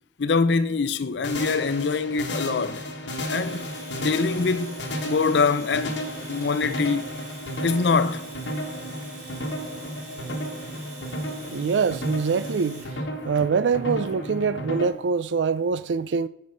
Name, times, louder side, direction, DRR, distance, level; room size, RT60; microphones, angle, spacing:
voice 1, 0.2-2.8 3.3-3.7 4.0-7.0 7.6-8.3, left 4 dB, 70° left, 0.5 m, -24 dB
sound 1, 1.2-14.9, equal, 90° left, 1.3 m, -33 dB
Domestic sounds home sounds, 3.1-13.0, right 3 dB, 50° right, 3.5 m, -45 dB
voice 2, 11.5-12.8 13.2-16.3, right 5 dB, 85° right, 0.4 m, -24 dB
8.5 x 4.6 x 5.4 m
head